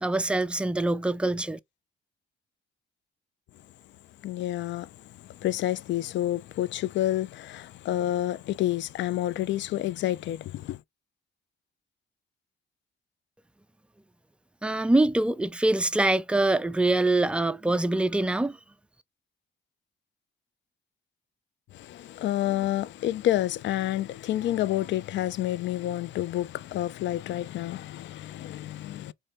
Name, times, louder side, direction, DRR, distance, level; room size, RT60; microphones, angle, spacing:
voice 1, 0.0-1.6 14.6-18.6, right 2 dB, 5° right, 0.4 m, -24 dB
voice 2, 4.2-10.8 21.7-29.1, left 13 dB, 65° left, 0.4 m, -29 dB
4.1 x 3.3 x 3.4 m
cardioid pair, 90°, 20 cm